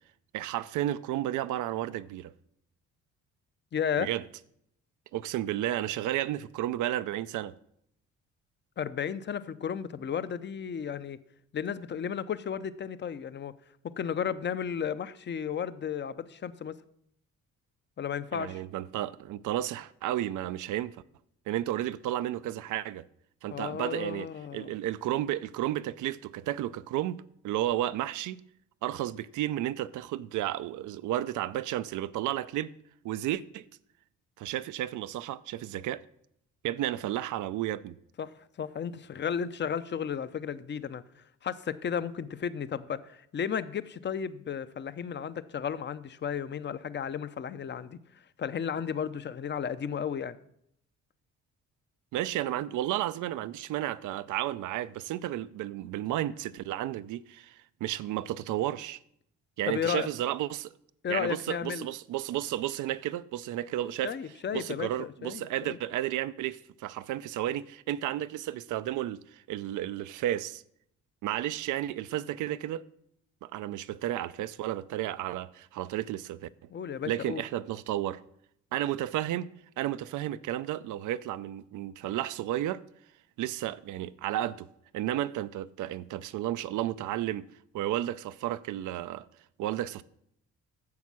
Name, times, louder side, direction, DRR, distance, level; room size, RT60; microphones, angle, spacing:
voice 1, 0.3-2.3 4.0-4.2 5.1-7.5 18.3-21.0 21.5-23.0 23.4-27.2 27.4-28.4 28.8-32.7 33.0-33.7 34.4-36.0 36.6-38.0 52.1-59.0 59.6-60.7 61.1-64.1 64.5-70.6 71.2-72.8 73.4-76.5 77.1-78.2 78.7-79.5 79.8-82.8 83.4-84.7 84.9-87.4 87.7-89.3 89.6-90.0, right 13 dB, 80° right, 0.5 m, -32 dB
voice 2, 3.7-4.1 8.8-11.2 11.5-13.5 13.8-16.7 18.0-18.6 23.5-24.7 38.2-41.0 41.4-48.0 48.4-50.4 59.7-60.1 61.0-61.9 64.0-65.8 76.7-77.4, left 7 dB, 35° left, 0.6 m, -33 dB
9.5 x 7.2 x 6.1 m
cardioid pair, 90°, 30 cm